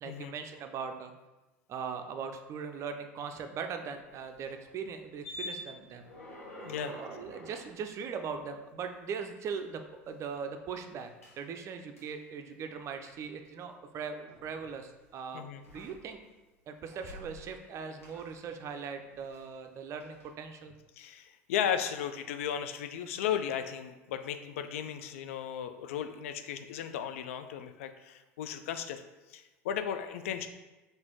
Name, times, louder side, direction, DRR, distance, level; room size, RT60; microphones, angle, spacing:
voice 1, 0.0-1.1 1.7-6.0 6.8-15.5 15.7-16.2 16.7-20.8, right 6 dB, 40° right, 7 dB, 0.5 m, -40 dB
sound 1, 3.9-9.0 9.4-10.5 11.2-11.4 12.0-12.1 12.8-13.3 14.3-15.1 15.6-16.4 16.7-17.7 18.0-19.7 20.0-20.3, left 1 dB, 85° left, 1.0 m, -49 dB
voice 2, 21.0-29.0 29.3-30.5, left 9 dB, 70° left, 9 dB, 0.4 m, -35 dB
4.0 x 2.6 x 4.5 m, 1.1 s
hypercardioid pair, 75°, 7 cm